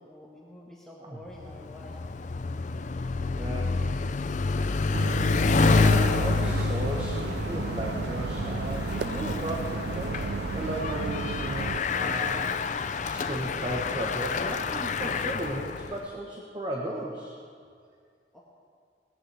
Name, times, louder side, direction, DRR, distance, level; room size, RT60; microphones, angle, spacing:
voice 1, 0.0-2.0 18.3-18.4, left 1 dB, 5° left, -5 dB, 1.4 m, -47 dB
Bicycle, 1.4-16.0, left 4 dB, 40° left, 0.5 m, -28 dB
voice 2, 3.4-3.8 4.6-4.7 5.7-10.2 10.5-12.4 13.0-17.3, right 1 dB, 25° right, -2 dB, 1.2 m, -35 dB
sound 1, 4.9-11.8, right 5 dB, 60° right, 0.4 m, -33 dB
20.0 x 15.0 x 3.5 m, 2.2 s
head